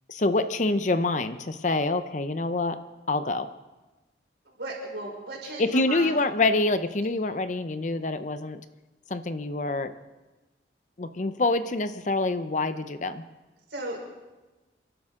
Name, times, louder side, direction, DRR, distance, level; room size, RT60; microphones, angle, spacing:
voice 1, 0.1-2.8 3.1-3.5 5.6-8.6 9.1-9.9 11.0-13.2, left 2 dB, 40° left, 11 dB, 0.7 m, -26 dB
voice 2, 4.4-6.1 13.7-14.0, right 2 dB, 70° right, -2 dB, 5.1 m, -36 dB
28.5 x 12.0 x 3.7 m, 1.1 s
head